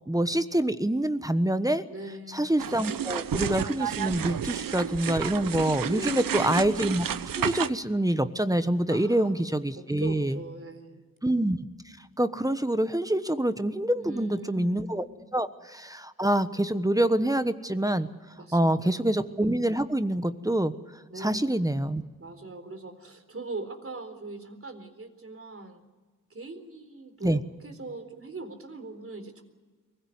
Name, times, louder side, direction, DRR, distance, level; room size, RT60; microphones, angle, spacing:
voice 1, 0.1-1.8 2.3-7.1 7.4-10.4 11.2-11.6 12.2-15.0 15.3-18.1 18.5-20.7 21.2-22.0 27.2-27.4, right 1 dB, 10° right, 11 dB, 1.2 m, -26 dB
voice 2, 1.9-2.5 5.9-6.6 8.9-9.4 9.8-11.1 13.9-15.3 18.3-19.1 21.1-21.5 22.2-25.8 26.3-29.4, right 2 dB, 40° right, 7 dB, 4.0 m, -41 dB
sound 1, 2.6-7.7, right 9 dB, 70° right, 1.0 m, -31 dB
23.5 x 16.5 x 9.5 m, 1.4 s
cardioid pair, 55°, 34 cm